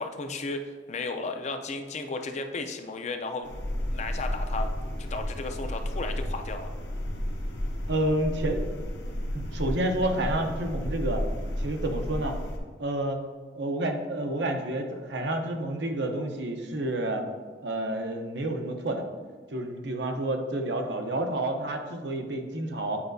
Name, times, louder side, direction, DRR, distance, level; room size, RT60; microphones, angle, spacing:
voice 1, 0.0-3.5 3.9-4.7 5.0-6.7, left 3 dB, 40° left, 6 dB, 0.4 m, -34 dB
sound 1, 3.4-12.6, equal, 75° left, 0.9 m, -32 dB
voice 2, 7.9-8.7 9.3-11.2 11.6-12.3 12.8-13.2 13.5-17.3 17.6-19.0 19.5-23.0, right 1 dB, 70° right, 4 dB, 0.7 m, -29 dB
8.6 x 5.0 x 2.6 m, 1.5 s
head